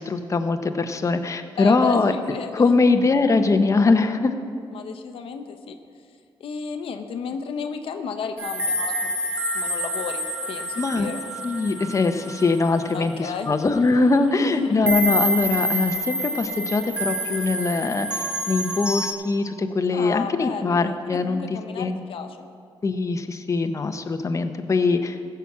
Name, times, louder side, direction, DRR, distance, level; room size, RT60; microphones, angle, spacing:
voice 1, 0.0-2.1 2.5-4.3 10.8-11.1 11.4-22.0 22.8-25.2, left 3 dB, 35° left, 7 dB, 0.8 m, -22 dB
voice 2, 1.6-2.7 4.7-5.7 6.4-11.2 12.9-13.5 14.4-14.9 19.9-22.5, left 5 dB, 80° left, 6 dB, 0.8 m, -33 dB
sound 1, 8.4-13.5 14.0-14.1 14.9-19.1, equal, 10° right, 1.5 m, -28 dB
14.5 x 5.9 x 7.3 m, 2.3 s
cardioid pair, 70°, 9 cm